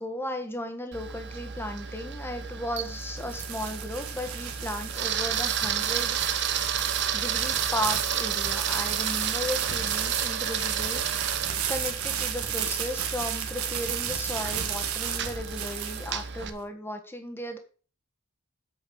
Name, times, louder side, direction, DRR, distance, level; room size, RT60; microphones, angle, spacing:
voice 1, 0.0-6.6 7.1-11.4 11.7-17.6, left 1 dB, 10° left, 5 dB, 1.5 m, -35 dB
Camera, 0.9-16.5, right 8 dB, 55° right, 1.0 m, -32 dB
sound 1, 2.6-16.5, right 9 dB, 80° right, 1.6 m, -32 dB
8.5 x 5.5 x 7.1 m, 0.40 s
head